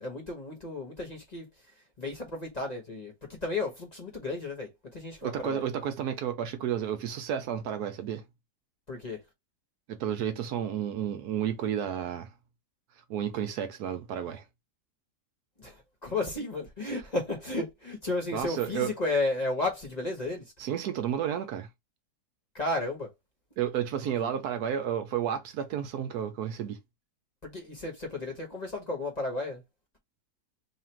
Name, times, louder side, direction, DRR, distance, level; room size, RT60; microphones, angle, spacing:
voice 1, 0.0-1.5 2.0-3.1 3.4-5.6 8.9-9.2 15.6-20.4 22.5-23.1 24.1-24.4 27.4-29.6, left 2 dB, 30° left, 1.1 m, -33 dB
voice 2, 5.2-8.2 9.9-12.3 13.1-14.4 18.3-18.9 20.6-21.7 23.6-26.8, right 9 dB, 70° right, 1.1 m, -31 dB
3.2 x 2.4 x 4.3 m
omnidirectional pair, 1.7 m